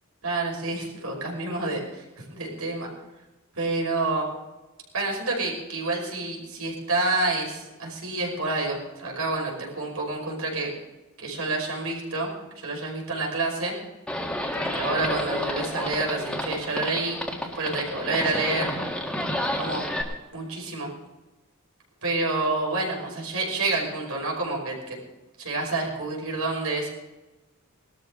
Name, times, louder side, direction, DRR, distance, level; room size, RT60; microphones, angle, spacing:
voice 1, 0.2-2.9 3.6-4.3 4.9-10.7 11.2-13.7 14.6-17.2 17.5-18.7 19.5-19.8 20.3-20.9 22.0-25.0 25.4-26.9, right 2 dB, 80° right, -1 dB, 5.4 m, -28 dB
Livestock farm animals working animals, 14.1-20.0, left 1 dB, 5° left, 1.9 m, -30 dB
20.0 x 13.0 x 3.9 m, 1.1 s
head